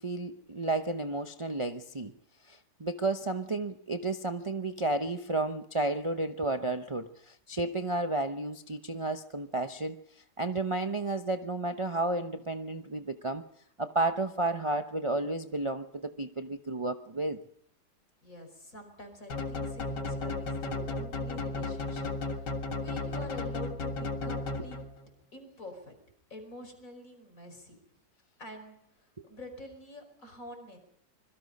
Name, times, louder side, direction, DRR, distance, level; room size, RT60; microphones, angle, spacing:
voice 1, 0.0-2.1 2.4-10.0 10.4-13.4 13.8-17.4 29.2-29.3, right 2 dB, 25° right, 0.7 m, -32 dB
voice 2, 18.2-24.8 25.3-26.0 26.3-27.8 28.4-30.8, left 1 dB, 50° left, 5.5 m, -47 dB
sound 1, 19.3-25.1, left 2 dB, 85° left, 2.5 m, -34 dB
26.0 x 22.5 x 5.4 m
omnidirectional pair, 1.8 m